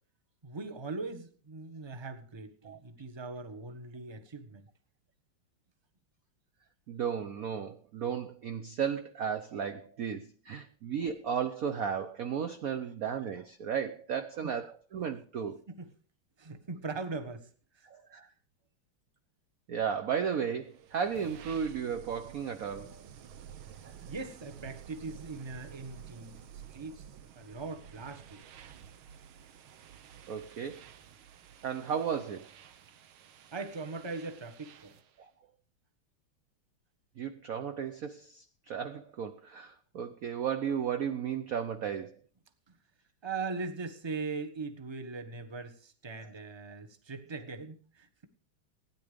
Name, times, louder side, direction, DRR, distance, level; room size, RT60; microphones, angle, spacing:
voice 1, 0.4-4.6 14.4-14.5 15.7-15.9 16.4-17.8 23.4-23.5 24.1-26.4 26.7-27.0 27.3-28.4 33.5-34.9 42.7-42.8 43.2-48.2, right 4 dB, 15° right, 1.0 m, -40 dB
voice 2, 6.9-15.6 17.8-18.3 19.7-23.0 23.8-23.9 30.3-30.8 31.6-32.5 35.2-35.3 37.2-42.1 46.2-46.3, right 7 dB, 60° right, 1.0 m, -34 dB
sound 1, 20.5-35.2, right 9 dB, 80° right, 1.8 m, -52 dB
16.5 x 10.0 x 5.1 m
omnidirectional pair, 2.3 m